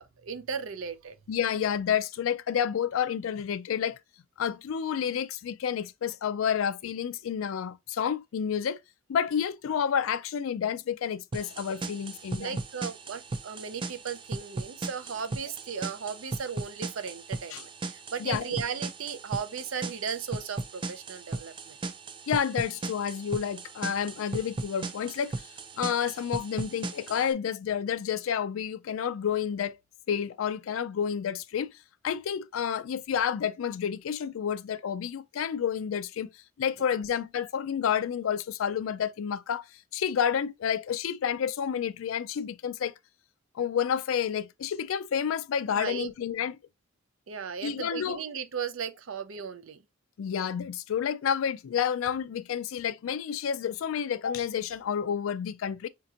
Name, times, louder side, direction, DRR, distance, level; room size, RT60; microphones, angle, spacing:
voice 1, 0.0-1.2 12.4-21.8 45.7-46.1 47.3-49.8, right 6 dB, 85° right, 0.5 m, -36 dB
voice 2, 1.3-4.0 4.4-8.8 9.1-12.6 17.5-17.6 18.2-18.6 22.3-25.5 25.8-29.7 30.1-31.7 32.0-36.3 36.6-39.7 39.9-42.9 43.5-46.5 47.6-48.2 50.2-55.9, left 8 dB, 85° left, 0.4 m, -30 dB
sound 1, 11.3-27.3, right 3 dB, 25° right, 0.3 m, -37 dB
5.0 x 2.8 x 2.4 m
head